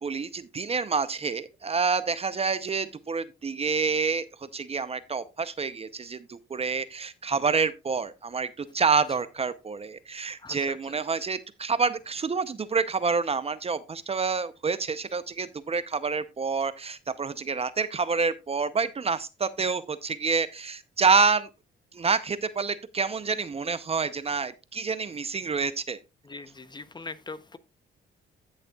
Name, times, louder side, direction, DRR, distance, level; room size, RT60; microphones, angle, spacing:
voice 1, 0.0-4.3 4.5-21.5 21.9-26.0, right 5 dB, 30° right, 0.6 m, -28 dB
voice 2, 10.2-10.9 26.2-27.6, left 3 dB, 20° left, 0.7 m, -42 dB
15.0 x 6.5 x 2.3 m
cardioid pair, 90°, 20 cm